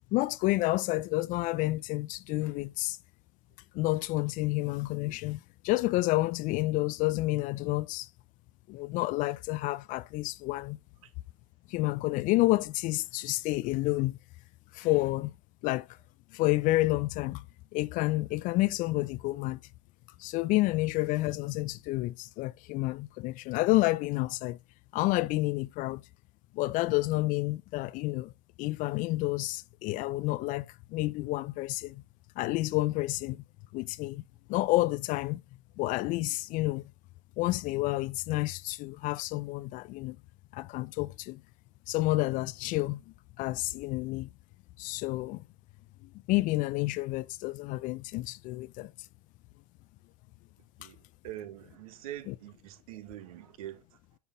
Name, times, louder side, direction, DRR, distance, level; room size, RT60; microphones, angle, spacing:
voice 1, 0.1-3.0 3.7-8.1 8.7-10.8 11.7-14.2 14.7-15.3 15.6-15.9 16.3-17.4 17.7-19.6 20.2-24.6 24.9-26.0 26.5-28.3 28.6-32.0 32.4-33.4 33.7-34.2 34.5-35.4 35.8-36.8 37.4-40.2 40.5-41.4 41.9-43.0 43.4-44.3 44.8-45.4 46.3-48.9 52.3-52.4, left 19 dB, 40° left, 0.5 m, -29 dB
voice 2, 50.8-53.8, right 13 dB, 65° right, 1.4 m, -44 dB
10.5 x 5.4 x 3.8 m
hypercardioid pair, 90°, 20 cm